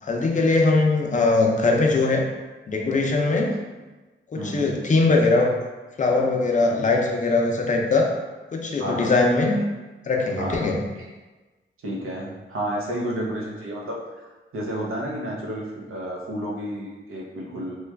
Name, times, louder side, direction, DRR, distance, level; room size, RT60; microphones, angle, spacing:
voice 1, 0.0-2.3 2.7-3.5 4.3-5.5 6.0-8.1 8.5-9.6 10.1-10.8, left 3 dB, 40° left, 1 dB, 0.5 m, -21 dB
voice 2, 4.3-4.7 6.5-6.9 8.8-9.2 10.4-10.8 11.8-17.8, right 1 dB, 85° right, -2 dB, 0.7 m, -31 dB
3.1 x 2.3 x 3.2 m, 1.2 s
wide cardioid pair, 145°, 21 cm